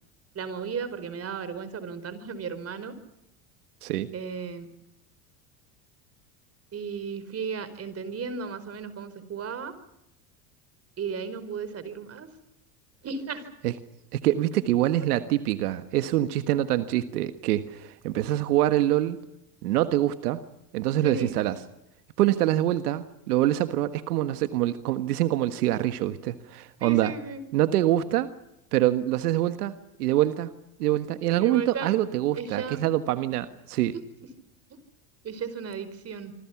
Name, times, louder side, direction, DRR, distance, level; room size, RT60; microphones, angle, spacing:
voice 1, 0.3-3.0 4.1-4.7 6.7-9.7 11.0-12.3 13.0-13.4 21.0-21.3 26.8-27.4 31.3-31.9 32.3-32.8 34.7-34.8 35.2-36.3, right 5 dB, 35° right, 13 dB, 4.8 m, -34 dB
voice 2, 14.1-19.2 19.6-20.4 20.7-21.5 22.2-27.1 27.5-28.3 28.7-29.7 30.0-30.5 30.8-33.9, right 14 dB, 90° right, 10 dB, 1.5 m, -25 dB
27.0 x 25.0 x 6.0 m, 0.86 s
supercardioid pair, 110°, 44 cm